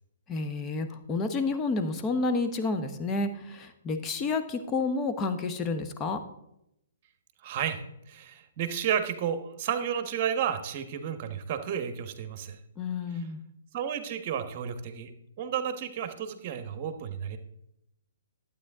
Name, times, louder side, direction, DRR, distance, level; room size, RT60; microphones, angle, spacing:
voice 1, 0.3-6.2 12.8-13.4, left 3 dB, 20° left, 6 dB, 1.1 m, -30 dB
voice 2, 7.4-7.8 8.1-12.6 13.7-15.1 15.4-17.4, right 8 dB, 40° right, 9 dB, 1.2 m, -32 dB
12.0 x 8.7 x 3.7 m, 0.82 s
figure-of-eight pair, 130°, 0 cm